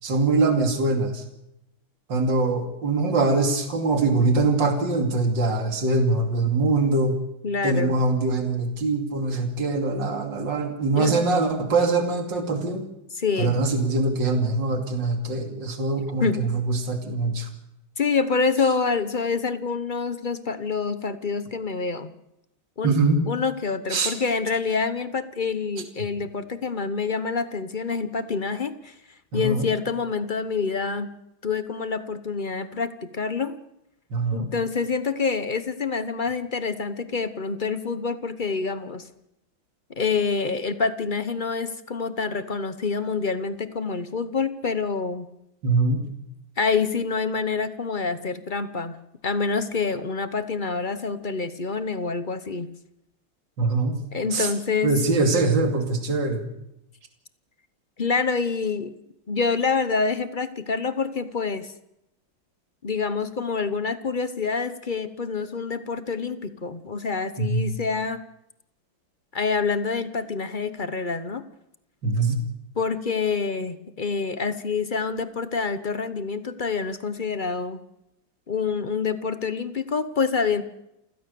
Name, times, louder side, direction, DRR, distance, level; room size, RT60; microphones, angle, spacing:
voice 1, 0.0-1.2 2.1-7.2 7.6-12.9 13.4-17.5 22.8-23.2 23.9-24.1 29.3-29.7 34.1-34.5 45.6-46.0 53.6-54.0 54.3-54.5 54.8-56.5 67.4-67.7 72.0-72.4, right 3 dB, 55° right, 4 dB, 3.2 m, -23 dB
voice 2, 7.4-7.9 10.9-11.1 13.1-13.6 16.2-16.4 18.0-22.1 22.8-23.0 23.3-28.9 29.3-31.1 31.4-33.6 34.3-39.1 39.9-45.3 46.6-49.0 49.2-52.7 54.1-55.0 58.0-58.9 59.3-61.7 62.8-68.2 69.3-71.4 72.8-77.8 78.5-80.6, left 5 dB, 45° left, 12 dB, 0.6 m, -27 dB
29.0 x 16.0 x 6.9 m, 0.86 s
omnidirectional pair, 2.3 m